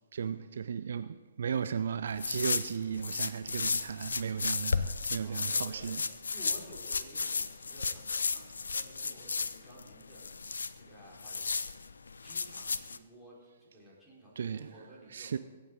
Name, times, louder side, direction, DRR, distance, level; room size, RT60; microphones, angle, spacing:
voice 1, 0.1-6.0 14.4-14.7 15.1-15.4, right 7 dB, 60° right, 0.4 m, -35 dB
sound 1, 2.1-13.0, left 4 dB, 70° left, 0.6 m, -34 dB
voice 2, 5.2-11.5 12.2-15.4, right 1 dB, ahead, 4.6 m, -54 dB
23.0 x 8.6 x 3.9 m
figure-of-eight pair, 120°, 0 cm